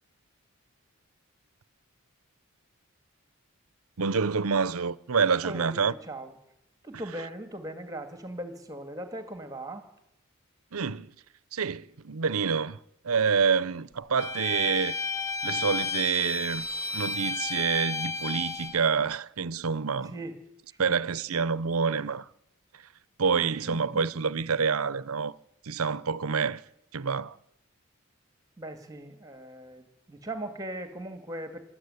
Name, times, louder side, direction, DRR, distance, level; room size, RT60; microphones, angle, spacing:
voice 1, 4.0-5.9 10.7-11.1 11.5-12.8 13.0-15.0 15.4-16.7 16.9-20.1 20.8-22.3 22.7-22.8 23.2-25.3 25.6-26.6 26.9-27.4, right 5 dB, 85° right, 0.7 m, -27 dB
voice 2, 5.4-6.3 6.8-9.8 20.1-20.4 20.7-20.9 23.4-24.0 28.6-31.6, right 1 dB, 15° right, 2.1 m, -39 dB
Bowed string instrument, 14.2-18.8, left 4 dB, 15° left, 0.8 m, -32 dB
27.5 x 13.0 x 9.7 m
head